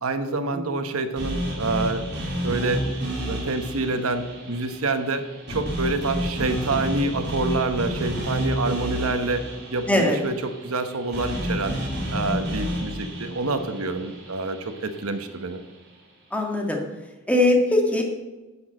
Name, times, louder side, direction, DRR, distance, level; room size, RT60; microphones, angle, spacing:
voice 1, 0.0-2.1 2.4-2.8 3.3-5.2 5.5-9.4 9.7-10.3 10.6-11.8 12.1-15.6, right 3 dB, 85° right, 8 dB, 1.0 m, -27 dB
sound 1, 1.2-15.3, equal, 50° right, 3.3 m, -30 dB
voice 2, 9.9-10.2 16.3-16.8 17.3-18.0, left 1 dB, 5° left, 1 dB, 1.8 m, -21 dB
11.5 x 6.2 x 7.5 m, 1.2 s
head